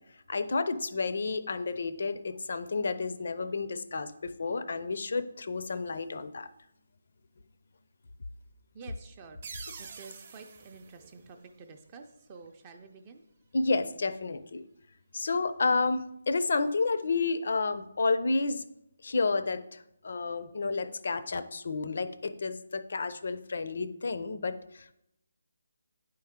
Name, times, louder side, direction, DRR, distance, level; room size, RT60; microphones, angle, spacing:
voice 1, 0.3-6.5 13.5-14.6 15.1-18.6 19.0-24.9, left 3 dB, 60° left, 13 dB, 0.5 m, -31 dB
voice 2, 8.7-13.2, right 4 dB, 20° right, 5 dB, 0.4 m, -50 dB
sound 1, 9.4-12.0, right 5 dB, 40° right, 0.8 m, -47 dB
9.6 x 4.6 x 3.6 m, 0.81 s
hypercardioid pair, 165°, 0 cm